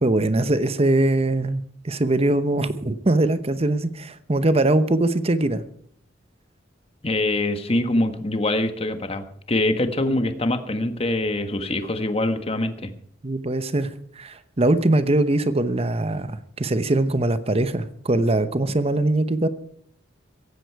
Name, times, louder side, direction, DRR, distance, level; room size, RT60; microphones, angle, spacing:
voice 1, 0.0-5.6 13.2-13.9 14.2-19.5, right 2 dB, 30° right, 12 dB, 0.9 m, -22 dB
voice 2, 7.0-12.9, left 1 dB, 30° left, 9 dB, 1.4 m, -24 dB
17.0 x 15.0 x 4.7 m, 0.64 s
head